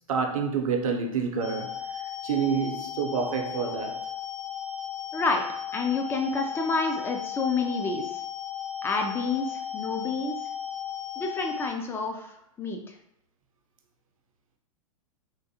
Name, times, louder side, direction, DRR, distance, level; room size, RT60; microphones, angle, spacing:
voice 1, 0.1-1.8 2.2-4.0, right 6 dB, 75° right, 0.7 m, -28 dB
sound 1, 1.4-11.7, left 9 dB, 50° left, 0.7 m, -36 dB
voice 2, 5.1-5.4 5.7-8.1 8.8-10.4 11.2-12.3 12.6-12.8, left 4 dB, 15° left, 0.4 m, -28 dB
3.7 x 2.5 x 2.7 m
hypercardioid pair, 125°, 18 cm